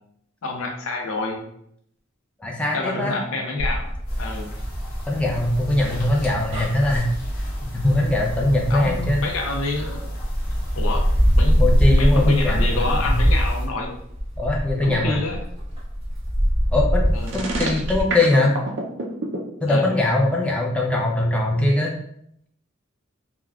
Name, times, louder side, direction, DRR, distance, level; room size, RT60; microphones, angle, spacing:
voice 1, 0.4-1.4 2.7-3.9 4.2-4.5 8.7-10.1 10.7-11.0 11.4-11.6 12.0-13.9 14.8-15.4 17.1-17.3 19.7-19.9, left 2 dB, 85° left, 2 dB, 0.6 m, -27 dB
voice 2, 2.4-3.2 5.1-7.1 7.7-9.2 11.6-13.2 14.4-15.2 16.7-18.6 19.6-21.9, left 2 dB, 5° left, -2 dB, 0.3 m, -21 dB
sound 1, 3.6-9.6 10.1-18.0, equal, 25° right, 1.1 m, -23 dB
sound 2, 4.1-13.7, equal, 45° left, 0.9 m, -32 dB
sound 3, 17.2-19.4, right 2 dB, 60° right, 0.4 m, -27 dB
3.5 x 2.2 x 2.3 m, 0.72 s
head